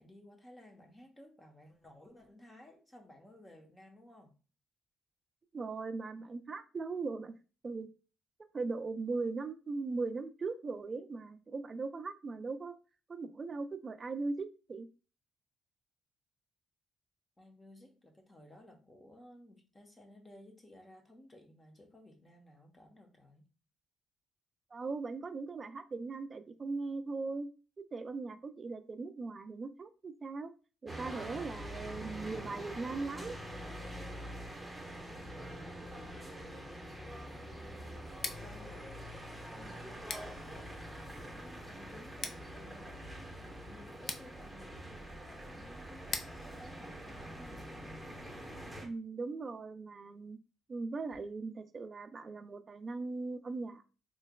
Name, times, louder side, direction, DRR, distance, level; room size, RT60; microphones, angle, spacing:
voice 1, 0.0-4.3 17.4-23.5 35.7-36.9 37.4-38.0 38.4-39.1 39.5-43.0 43.4-47.7, left 1 dB, 20° left, 0.9 m, -57 dB
voice 2, 5.5-7.3 7.6-7.9 8.5-12.7 13.1-14.9 24.7-27.5 27.9-30.5 30.8-33.4 48.8-50.4 50.7-53.9, right 3 dB, 35° right, 0.4 m, -39 dB
sound 1, 30.9-48.9, equal, ahead, 1.1 m, -45 dB
Scissors, 38.1-47.9, left 4 dB, 50° left, 0.4 m, -47 dB
3.8 x 3.2 x 2.3 m
cardioid pair, 90°, 0 cm